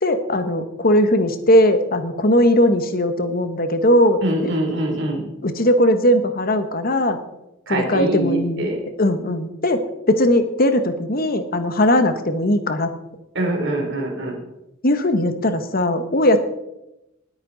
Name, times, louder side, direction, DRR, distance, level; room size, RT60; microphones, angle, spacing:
voice 1, 0.0-4.5 5.4-7.2 7.7-8.7 9.0-12.9 14.8-16.4, left 1 dB, 45° left, 9 dB, 1.3 m, -19 dB
voice 2, 4.2-5.3 7.7-8.8 13.3-14.4, right 1 dB, 60° right, 1 dB, 3.4 m, -23 dB
20.0 x 8.7 x 4.0 m, 0.92 s
head